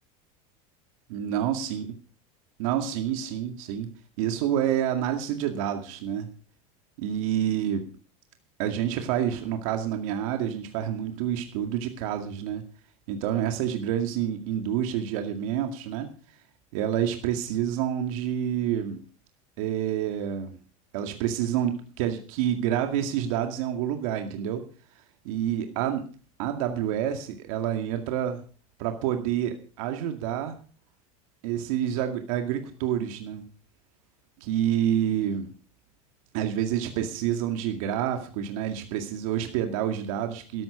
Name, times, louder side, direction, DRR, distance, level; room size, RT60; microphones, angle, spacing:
voice 1, 1.1-1.9 2.6-3.9 4.2-6.3 7.0-7.9 8.6-12.6 13.1-16.1 16.7-19.0 19.6-20.6 20.9-24.6 25.2-26.1 26.4-28.4 28.8-30.6 31.4-33.5 34.4-35.5 36.3-40.6, right 10 dB, 70° right, 5 dB, 2.2 m, -28 dB
13.5 x 12.5 x 5.0 m, 0.39 s
supercardioid pair, 115°, 18 cm